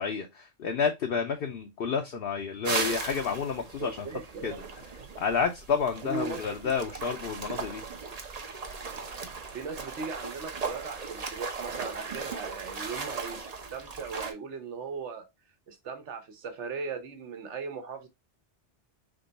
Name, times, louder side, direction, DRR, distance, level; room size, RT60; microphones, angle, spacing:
voice 1, 0.0-4.1 4.4-4.5 5.2-7.8, left 6 dB, 60° left, 0.8 m, -30 dB
sound 1, 2.6-14.3, right 4 dB, 40° right, 0.7 m, -37 dB
voice 2, 3.8-4.7 6.0-6.7 9.5-15.3 15.7-18.1, right 5 dB, 75° right, 1.2 m, -38 dB
3.8 x 3.3 x 3.9 m
omnidirectional pair, 1.2 m